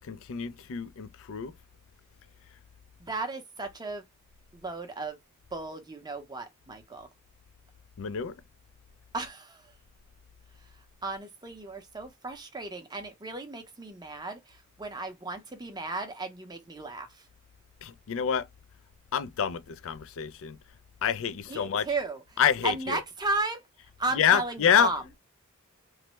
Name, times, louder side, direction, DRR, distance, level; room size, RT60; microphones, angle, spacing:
voice 1, 0.1-1.5 8.0-8.3 17.8-18.5 19.1-20.6 21.0-21.9 22.4-23.0 24.1-24.9, left 8 dB, 65° left, 0.4 m, -27 dB
voice 2, 3.1-4.0 4.6-5.2 5.5-7.1 9.1-9.6 11.0-17.1 21.5-22.2 22.6-23.6 24.0-25.2, right 3 dB, 20° right, 0.6 m, -34 dB
3.1 x 2.1 x 2.9 m
head